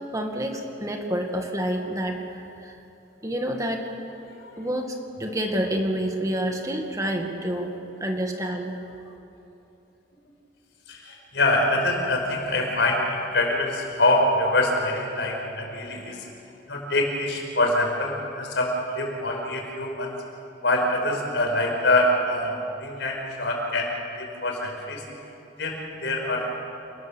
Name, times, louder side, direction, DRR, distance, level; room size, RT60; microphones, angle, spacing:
voice 1, 0.1-2.8 3.2-3.8 4.6-7.7 8.0-8.7, right 1 dB, 20° right, 3 dB, 2.0 m, -28 dB
voice 2, 10.9-16.3 16.7-20.1 20.6-23.9 24.2-25.0 25.6-26.5, left 1 dB, 80° left, 1 dB, 5.0 m, -25 dB
28.5 x 19.5 x 7.3 m, 2.8 s
head